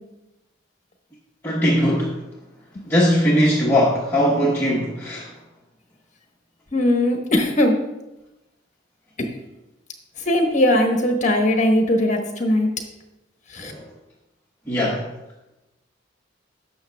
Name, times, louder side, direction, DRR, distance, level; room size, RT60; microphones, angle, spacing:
voice 1, 1.4-2.2 2.8-5.3 13.6-13.9 14.6-15.1, equal, 10° left, -6 dB, 1.1 m, -20 dB
voice 2, 6.7-7.7 10.3-12.7 13.5-13.7, left 1 dB, 40° left, 4 dB, 1.1 m, -19 dB
11.0 x 6.8 x 2.3 m, 0.96 s
head